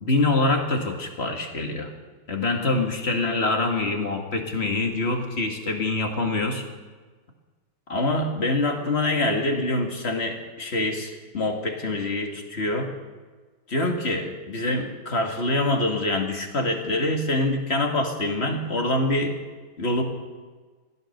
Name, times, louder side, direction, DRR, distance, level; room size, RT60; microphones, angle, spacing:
voice 1, 0.0-1.9 2.3-6.6 7.9-12.9 13.7-19.4 19.8-20.0, left 2 dB, 30° left, 3 dB, 1.9 m, -25 dB
16.0 x 12.0 x 6.6 m, 1.4 s
omnidirectional pair, 2.4 m